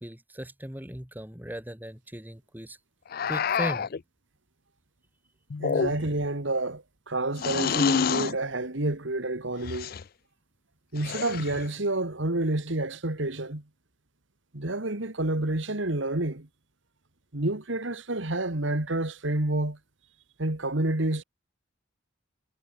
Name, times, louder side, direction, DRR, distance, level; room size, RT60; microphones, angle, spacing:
voice 1, 0.0-2.8 3.3-3.9, equal, 10° right, 2.0 m, -37 dB
sound 1, 3.1-4.0 5.5-6.3 7.4-8.4 9.6-10.0 11.0-11.7, left 6 dB, 45° left, 0.4 m, -28 dB
voice 2, 5.6-9.9 10.9-13.6 14.5-16.5 17.3-19.8 20.4-21.2, right 2 dB, 65° right, 2.1 m, -29 dB
head